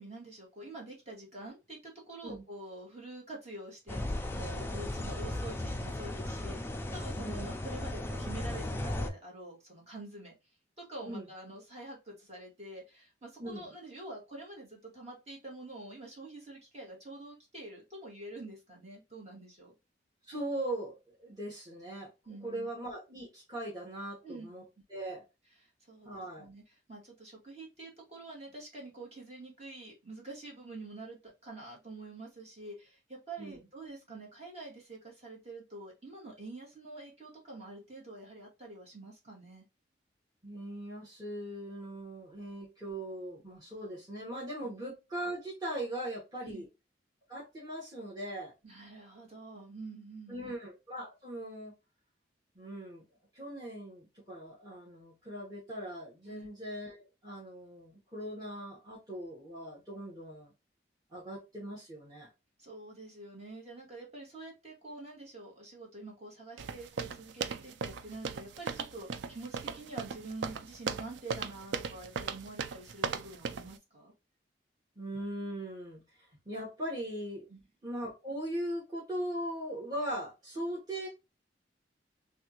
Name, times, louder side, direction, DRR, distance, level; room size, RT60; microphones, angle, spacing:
voice 1, 0.0-10.3 10.8-19.7 22.2-22.7 24.2-24.5 25.9-26.6 26.9-39.6 44.6-44.7 46.4-46.6 48.6-50.5 56.3-56.5 62.6-74.1 77.5-77.6, right 2 dB, 35° right, -2 dB, 1.5 m, -47 dB
sound 1, 3.9-9.1, left 1 dB, 10° left, 0.4 m, -36 dB
voice 2, 7.2-7.6 11.0-11.3 13.4-13.7 20.3-22.1 22.4-24.6 24.9-25.2 26.0-26.5 33.4-33.7 40.4-46.7 47.3-48.5 50.3-51.7 52.5-53.0 53.3-60.5 61.1-62.3 75.0-77.4 77.8-81.1, right 1 dB, 20° right, -7 dB, 1.3 m, -40 dB
sound 2, 66.6-73.7, right 6 dB, 85° right, 0.4 m, -37 dB
3.4 x 2.4 x 2.8 m, 0.26 s
head